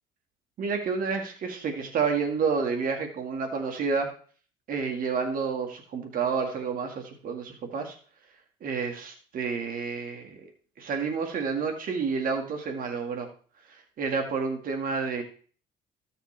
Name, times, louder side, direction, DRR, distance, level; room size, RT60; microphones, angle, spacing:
voice 1, 0.6-4.1 4.7-7.9 8.6-10.5 10.8-13.3 13.7-15.2, right 5 dB, 55° right, 4 dB, 1.8 m, -29 dB
14.5 x 6.6 x 3.3 m, 0.43 s
cardioid pair, 110°, 17 cm